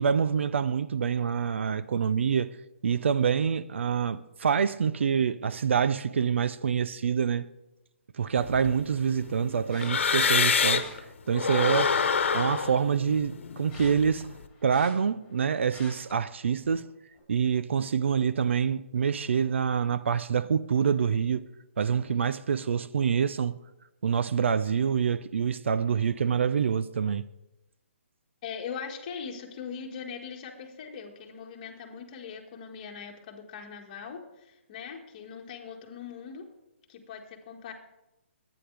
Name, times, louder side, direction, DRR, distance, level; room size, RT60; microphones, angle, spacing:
voice 1, 0.0-2.5 2.8-7.5 8.2-10.9 11.3-12.0 12.3-14.2 14.6-16.8 17.3-21.5 21.8-23.5 24.0-27.2, right 7 dB, 65° right, 0.6 m, -26 dB
sound 1, 8.4-11.0 11.3-14.4, left 6 dB, 65° left, 1.3 m, -27 dB
sound 2, 9.7-10.2 10.7-10.9 11.6-12.9 13.2-15.4 15.7-16.1 16.6-16.9 17.1-17.2, left 4 dB, 15° left, 5.3 m, -48 dB
voice 2, 28.4-36.5 36.9-37.7, left 6 dB, 30° left, 2.0 m, -41 dB
21.5 x 9.8 x 3.5 m
hypercardioid pair, 160°, 7 cm